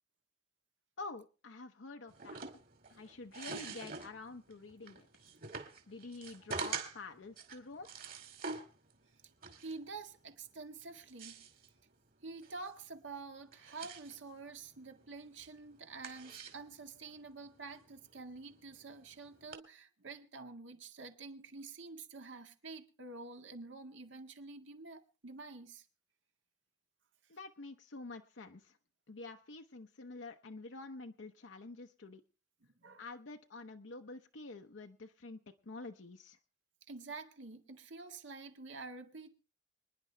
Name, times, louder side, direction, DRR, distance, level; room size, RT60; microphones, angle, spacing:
voice 1, 1.0-2.4 2.9-5.1 5.9-7.9 27.3-28.8 29.1-32.2 33.0-36.4, left 3 dB, 85° left, 0.8 m, -48 dB
sound 1, 2.1-19.6, right 4 dB, 50° right, 2.2 m, -47 dB
voice 2, 9.6-11.5 12.2-25.9 32.8-33.0 36.9-39.3, right 3 dB, 90° right, 1.8 m, -48 dB
25.5 x 10.5 x 3.3 m
head